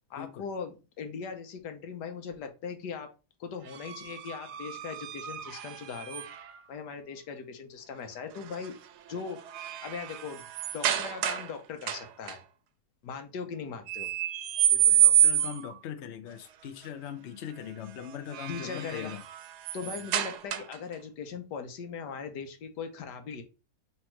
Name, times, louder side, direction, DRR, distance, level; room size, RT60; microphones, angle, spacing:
voice 1, 0.1-3.1 3.4-6.2 6.7-8.8 9.1-9.4 9.8-10.4 10.7-12.4 13.0-14.1 18.5-19.1 19.7-23.4, left 6 dB, 90° left, 1.4 m, -39 dB
sound 1, 3.7-6.6 8.4-8.7 9.1-11.5 11.8-12.4 13.9-15.8 18.1-20.9, right 11 dB, 80° right, 1.2 m, -28 dB
voice 2, 14.7-19.2, left 9 dB, 60° left, 0.7 m, -40 dB
3.4 x 3.0 x 4.4 m
omnidirectional pair, 1.8 m